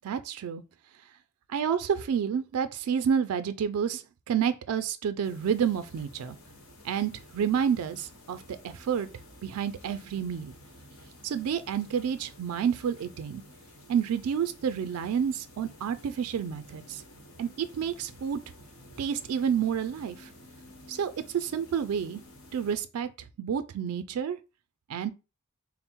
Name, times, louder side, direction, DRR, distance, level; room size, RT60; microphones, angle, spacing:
voice 1, 0.0-0.6 1.5-6.4 6.8-9.1 9.4-10.5 11.2-13.4 13.9-17.0 17.4-18.4 19.0-20.3 20.9-22.2 22.5-23.1 23.4-24.4 24.9-25.1, right 7 dB, 85° right, 0.4 m, -29 dB
sound 1, 5.2-22.8, equal, 70° left, 1.1 m, -52 dB
3.7 x 2.0 x 4.4 m
head